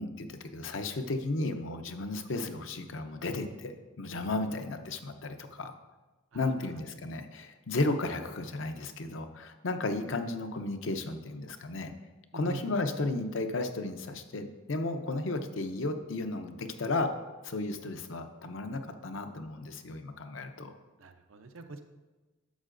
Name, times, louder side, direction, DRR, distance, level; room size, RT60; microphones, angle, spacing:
voice 1, 0.0-5.7 6.3-11.9 12.3-17.1 17.4-20.8, left 2 dB, 65° left, 7 dB, 0.7 m, -34 dB
voice 2, 21.0-21.8, right 3 dB, 85° right, 7 dB, 0.7 m, -43 dB
11.0 x 6.5 x 2.6 m, 1.2 s
head